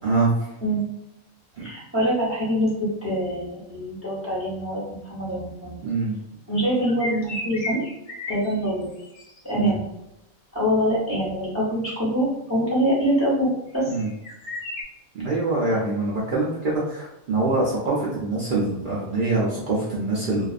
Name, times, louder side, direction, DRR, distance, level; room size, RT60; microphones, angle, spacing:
voice 1, 0.0-0.3 1.6-1.7 5.8-6.2 9.5-9.7 13.9-14.1 15.1-20.5, right 3 dB, 80° right, -6 dB, 0.4 m, -24 dB
voice 2, 1.6-2.7 3.0-5.8 6.5-7.8 8.3-8.9 9.4-9.8 10.5-13.9, equal, 15° right, -8 dB, 0.6 m, -24 dB
sound 1, 6.8-9.5 13.7-14.8, left 1 dB, 60° left, 0.8 m, -34 dB
2.4 x 2.3 x 2.4 m, 0.88 s
omnidirectional pair, 1.5 m